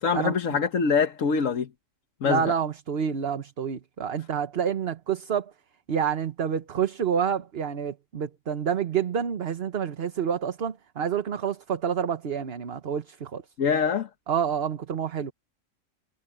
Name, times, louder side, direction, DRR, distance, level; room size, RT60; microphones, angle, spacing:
voice 1, 0.0-1.7 2.2-2.5 13.6-14.1, left 6 dB, 75° left, 1.5 m, -24 dB
voice 2, 2.2-5.5 5.9-13.4 14.3-15.3, right 7 dB, 50° right, 1.2 m, -28 dB
omnidirectional pair, 1.4 m